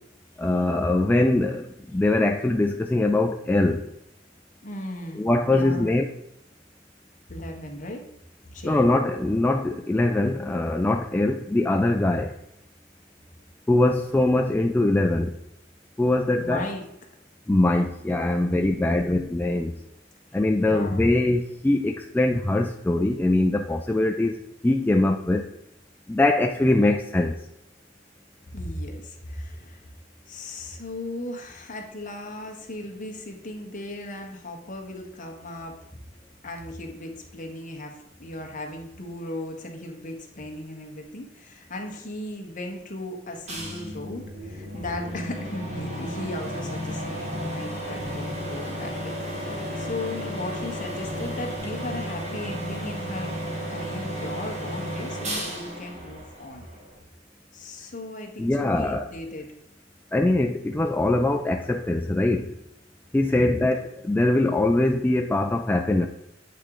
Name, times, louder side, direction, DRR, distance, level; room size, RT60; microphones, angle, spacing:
voice 1, 0.4-1.7 1.9-3.8 5.2-6.1 8.6-12.3 13.7-15.3 16.0-16.7 17.5-19.7 20.3-24.4 24.6-25.5 26.1-27.3 58.4-59.1 60.1-62.5 63.1-66.1, left 2 dB, 10° left, 3 dB, 0.3 m, -22 dB
voice 2, 4.6-6.0 7.3-8.0 8.5-9.0 16.4-16.9 18.4-18.7 19.0-19.3 20.6-21.1 28.5-29.8 30.3-35.8 36.4-53.3 53.7-56.6 57.5-59.5 63.1-63.8, left 1 dB, 45° left, 2 dB, 1.3 m, -37 dB
sound 1, 43.5-57.0, equal, 40° right, 1.8 m, -33 dB
8.3 x 3.7 x 4.8 m, 0.83 s
head